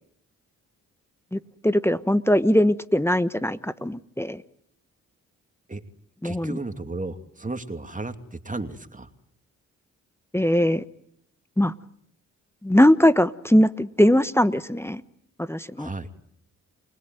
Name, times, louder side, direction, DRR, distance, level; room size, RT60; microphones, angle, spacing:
voice 1, 1.3-4.4 6.2-6.6 10.3-10.8 11.6-11.7 12.6-15.0 15.4-15.9, left 1 dB, 5° left, 14 dB, 1.2 m, -21 dB
voice 2, 6.2-9.1 15.8-16.1, right 2 dB, 20° right, 7 dB, 2.7 m, -34 dB
29.5 x 19.5 x 9.3 m, 0.70 s
hypercardioid pair, 45°, 36 cm